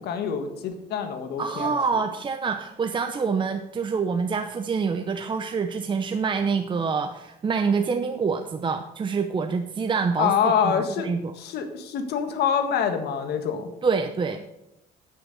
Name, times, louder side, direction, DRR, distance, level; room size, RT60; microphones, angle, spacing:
voice 1, 0.0-1.7 10.2-11.1 11.4-13.7, left 7 dB, 75° left, 7 dB, 1.6 m, -26 dB
voice 2, 1.4-11.3 13.8-14.4, right 5 dB, 30° right, 7 dB, 0.8 m, -26 dB
9.3 x 9.2 x 6.6 m, 0.89 s
cardioid pair, 110°, 17 cm